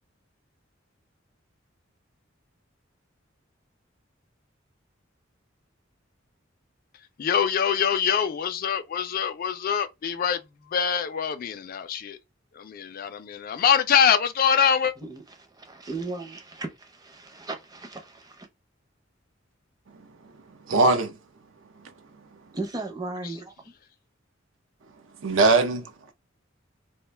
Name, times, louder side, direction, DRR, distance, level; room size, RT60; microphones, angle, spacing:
voice 1, 7.2-10.4 10.7-12.2 12.5-14.9 23.2-23.3, left 7 dB, 45° left, 0.3 m, -24 dB
voice 2, 15.0-18.5 22.5-23.7, right 3 dB, 20° right, 0.6 m, -36 dB
voice 3, 20.7-21.1 25.2-26.1, right 3 dB, 75° right, 0.5 m, -21 dB
2.4 x 2.2 x 3.2 m
head